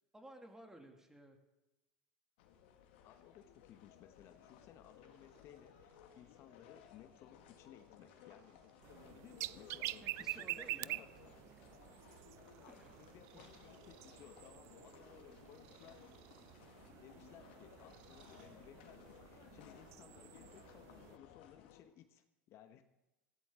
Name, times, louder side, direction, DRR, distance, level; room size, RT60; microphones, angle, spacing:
voice 1, 0.1-1.4 10.0-11.0 12.7-12.9 13.3-13.4, right 1 dB, 10° right, 4 dB, 2.3 m, -56 dB
sound 1, 2.4-21.8, left 9 dB, 80° left, 1.9 m, -60 dB
voice 2, 3.0-8.6 9.1-11.3 12.6-16.0 16.9-22.8, left 10 dB, 55° left, 9 dB, 1.0 m, -60 dB
Purr, 3.9-19.1, right 8 dB, 70° right, 1.9 m, -69 dB
sound 2, 8.8-21.2, right 17 dB, 55° right, 0.3 m, -48 dB
16.0 x 14.5 x 3.7 m, 0.99 s
supercardioid pair, 105°, 6 cm